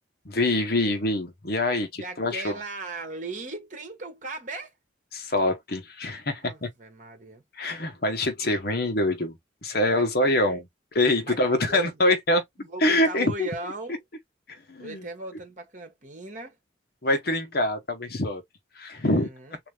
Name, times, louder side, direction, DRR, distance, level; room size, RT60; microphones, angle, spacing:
voice 1, 0.2-2.6 5.1-6.7 7.5-12.4 12.8-13.5 14.5-15.1 17.0-18.4 18.7-19.6, left 1 dB, 55° left, 1.1 m, -25 dB
voice 2, 2.0-4.7 6.4-7.4 9.9-10.6 11.2-12.0 12.6-14.0 14.8-16.6 19.1-19.6, right 2 dB, 45° right, 1.5 m, -38 dB
3.7 x 2.8 x 3.4 m
head